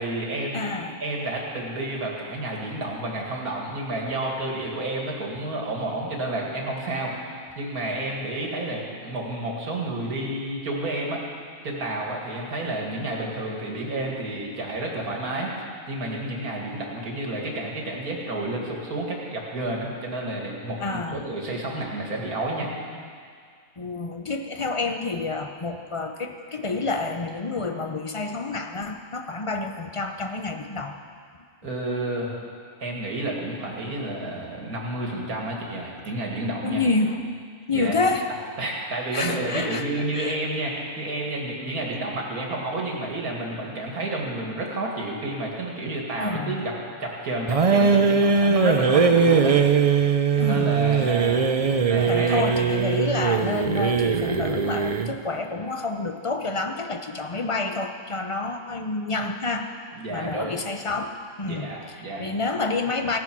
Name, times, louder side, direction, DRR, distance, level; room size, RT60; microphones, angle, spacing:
voice 1, 0.0-11.2 11.6-15.5 15.9-22.7 31.6-32.4 32.8-36.8 37.7-38.0 38.6-46.7 47.0-50.1 50.4-51.5 51.9-52.5 59.9-60.6 61.4-62.3, right 2 dB, 90° right, -1 dB, 2.6 m, -30 dB
voice 2, 0.5-1.0 20.8-21.3 23.8-31.0 36.6-37.3 37.7-38.3 39.1-39.8 40.1-40.4 46.2-46.6 50.4-51.1 52.1-59.7 60.1-61.7 62.0-63.2, left 3 dB, 35° left, 5 dB, 0.5 m, -28 dB
sound 1, 47.5-55.2, right 5 dB, 60° right, 0.3 m, -20 dB
17.0 x 9.7 x 6.1 m, 2.1 s
omnidirectional pair, 1.5 m